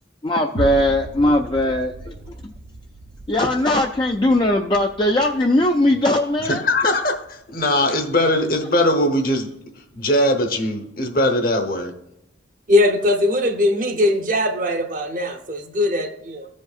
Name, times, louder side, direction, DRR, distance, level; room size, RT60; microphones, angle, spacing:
voice 1, 0.2-2.1 3.3-6.6, left 1 dB, 25° left, 2 dB, 0.4 m, -19 dB
sound 1, 0.6-9.1 9.6-9.7, right 2 dB, 75° right, 0.6 m, -37 dB
voice 2, 6.4-9.5 9.9-11.9, left 1 dB, 50° left, 5 dB, 1.0 m, -20 dB
voice 3, 12.7-16.5, left 1 dB, 45° right, 6 dB, 0.8 m, -20 dB
15.0 x 5.2 x 2.4 m, 0.83 s
head